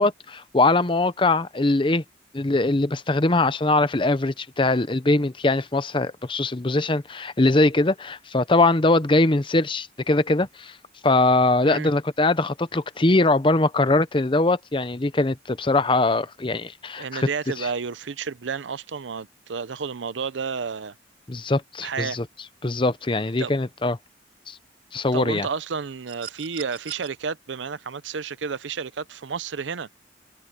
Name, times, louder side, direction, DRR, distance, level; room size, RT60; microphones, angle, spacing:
voice 1, 0.0-2.0 2.3-10.7 11.0-17.3 17.6-17.7 21.3-22.2 22.6-24.0 24.5-24.6 24.9-25.5, left 2 dB, 25° left, 0.7 m, -22 dB
voice 2, 17.0-20.9 21.8-22.2 23.4-23.5 25.1-29.9, right 5 dB, 90° right, 0.6 m, -31 dB
sound 1, 26.1-27.1 28.6-28.7, right 9 dB, 50° right, 6.2 m, -40 dB
head